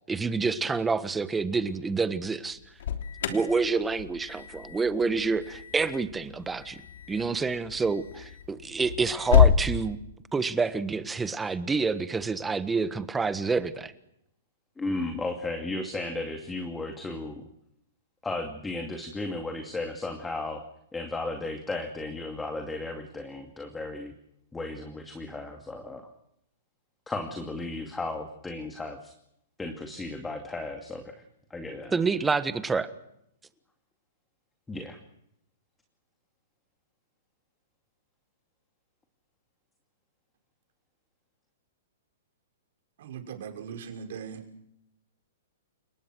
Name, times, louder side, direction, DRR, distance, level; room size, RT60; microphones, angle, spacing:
voice 1, 0.1-2.6 3.3-6.8 7.1-10.0 10.3-13.9 31.9-32.9, right 4 dB, 10° right, 13 dB, 1.4 m, -28 dB
Alarm, 2.5-9.6, left 9 dB, 65° left, 3.2 m, -28 dB
voice 2, 14.8-17.4 18.2-20.6 20.9-24.1 24.5-26.0 27.1-29.1 29.6-31.0 31.5-31.9 34.7-35.0, left 2 dB, 10° left, 5 dB, 2.4 m, -34 dB
voice 3, 43.0-44.4, right 7 dB, 65° right, 4 dB, 5.8 m, -39 dB
30.0 x 18.5 x 6.3 m, 0.77 s
hypercardioid pair, 145°, 0 cm